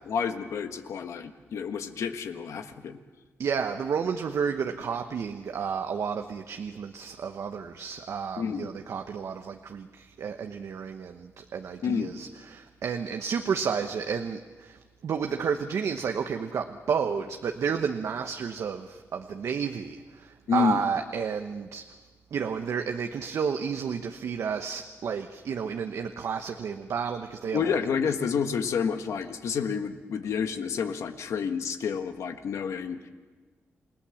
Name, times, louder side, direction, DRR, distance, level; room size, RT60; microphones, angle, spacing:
voice 1, 0.1-3.0 8.4-8.7 11.8-12.1 20.5-20.8 27.5-33.1, left 6 dB, 80° left, 7 dB, 1.6 m, -29 dB
voice 2, 3.4-21.8 22.3-27.7, right 6 dB, 70° right, 5 dB, 1.1 m, -31 dB
28.5 x 18.5 x 7.2 m, 1.4 s
cardioid pair, 80°, 5 cm